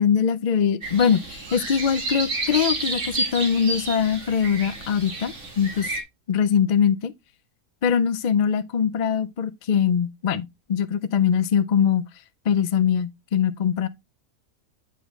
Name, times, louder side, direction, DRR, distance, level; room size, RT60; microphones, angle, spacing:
voice 1, 0.0-5.9 6.3-7.1 7.8-12.1 12.5-13.9, left 7 dB, 70° left, 0.4 m, -22 dB
sound 1, 0.8-6.0, right 2 dB, 50° right, 2.1 m, -30 dB
8.3 x 5.6 x 3.1 m
omnidirectional pair, 1.6 m